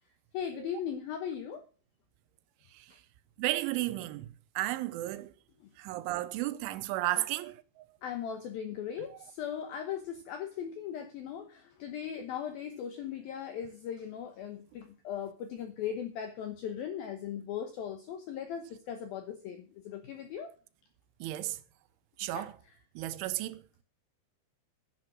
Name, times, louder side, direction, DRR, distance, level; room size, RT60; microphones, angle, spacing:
voice 1, 0.3-1.6 5.6-5.7 7.1-7.2 8.0-20.5 22.3-22.5, left 8 dB, 75° left, 2.2 m, -38 dB
voice 2, 3.4-4.3 4.6-5.3 5.8-7.9 21.2-21.6 22.2-22.5 23.0-23.6, right 16 dB, 80° right, 3.2 m, -33 dB
10.5 x 10.5 x 6.2 m
omnidirectional pair, 5.6 m